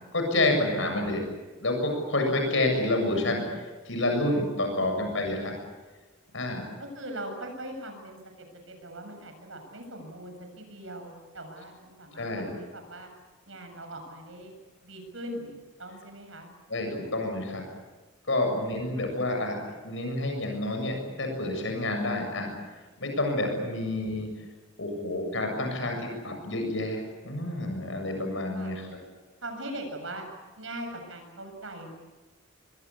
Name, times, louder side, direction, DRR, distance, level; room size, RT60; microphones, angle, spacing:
voice 1, 0.1-1.2 1.6-3.4 3.8-5.5 6.3-6.7 12.2-12.5 16.7-17.6 18.3-19.6 19.8-22.5 23.0-24.3 24.8-28.9, left 2 dB, 70° left, 3 dB, 7.4 m, -28 dB
voice 2, 6.8-8.2 8.7-13.1 13.5-14.5 14.8-15.5 15.8-16.5 19.0-19.1 23.8-24.4 28.5-28.7 29.4-30.3 30.6-31.9, right 1 dB, 70° right, 5 dB, 7.3 m, -41 dB
26.0 x 22.5 x 8.6 m, 1.3 s
head